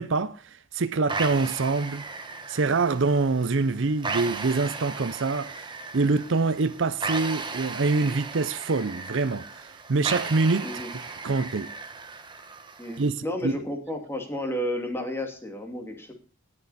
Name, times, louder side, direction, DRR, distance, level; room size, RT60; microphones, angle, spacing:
voice 1, 0.0-2.1 2.5-10.7 11.2-11.7 13.0-13.1 13.4-13.5, right 3 dB, 60° right, 0.6 m, -25 dB
sound 1, 1.1-13.1, right 4 dB, 20° right, 1.2 m, -36 dB
voice 2, 12.8-16.1, equal, 10° left, 2.3 m, -32 dB
18.5 x 6.7 x 4.1 m
head